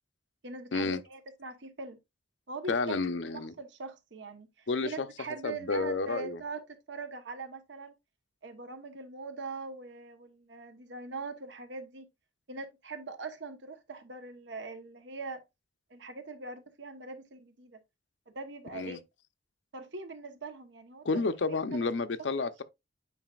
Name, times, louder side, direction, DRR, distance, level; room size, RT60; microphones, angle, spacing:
voice 1, 0.4-2.0 2.5-3.0 3.3-7.9 8.4-12.1 12.5-15.4 15.9-17.8 18.3-19.0 19.7-21.2 21.5-21.8 22.4-22.6, right 3 dB, 70° right, 1.1 m, -42 dB
voice 2, 2.7-3.5 4.7-5.1 5.4-6.4 18.7-19.0 21.0-22.5, left 3 dB, 75° left, 0.7 m, -30 dB
9.1 x 4.9 x 2.4 m
head